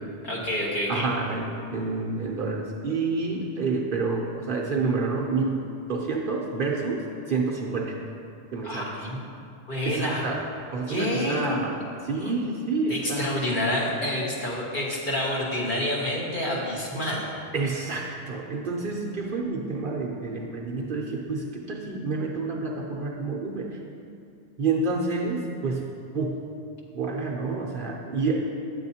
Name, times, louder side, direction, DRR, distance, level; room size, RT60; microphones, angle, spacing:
voice 1, 0.2-1.1 8.6-9.2 9.7-10.3 10.9-11.6 12.2-12.3 12.9-17.3, left 1 dB, 45° left, -5 dB, 1.4 m, -28 dB
voice 2, 0.9-5.6 5.9-8.0 8.5-8.9 9.8-10.4 10.7-13.4 17.5-23.8 24.6-25.9 26.1-26.4 26.9-28.4, right 3 dB, 55° right, -2 dB, 0.7 m, -28 dB
9.2 x 7.7 x 2.8 m, 2.5 s
omnidirectional pair, 1.2 m